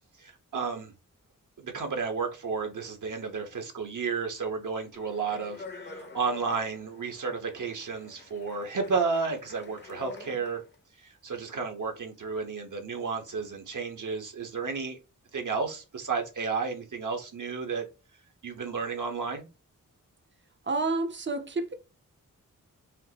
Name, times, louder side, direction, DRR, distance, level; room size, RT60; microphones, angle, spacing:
voice 1, 0.2-0.9 1.6-10.6 11.0-15.0 15.3-17.9 18.4-19.5, right 5 dB, 65° right, 1.2 m, -32 dB
Speech, 4.9-10.8, left 3 dB, 30° left, 0.8 m, -47 dB
voice 2, 20.7-21.7, right 3 dB, 35° right, 0.7 m, -29 dB
5.7 x 2.5 x 2.9 m
wide cardioid pair, 110°, 33 cm